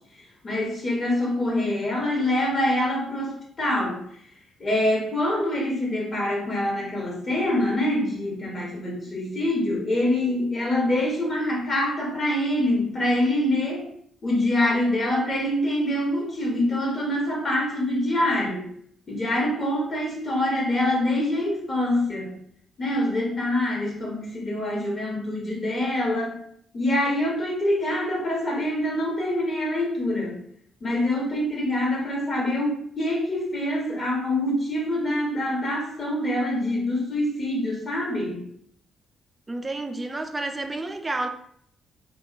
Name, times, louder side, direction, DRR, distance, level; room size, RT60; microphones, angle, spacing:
voice 1, 0.4-4.0 4.6-13.9 14.2-18.7 19.1-22.3 22.8-26.4 26.7-30.4 30.8-38.4, left 1 dB, 45° left, -2 dB, 1.0 m, -25 dB
voice 2, 39.5-41.3, right 2 dB, 25° right, 6 dB, 0.4 m, -30 dB
2.8 x 2.3 x 2.3 m, 0.64 s
hypercardioid pair, 45°, 0 cm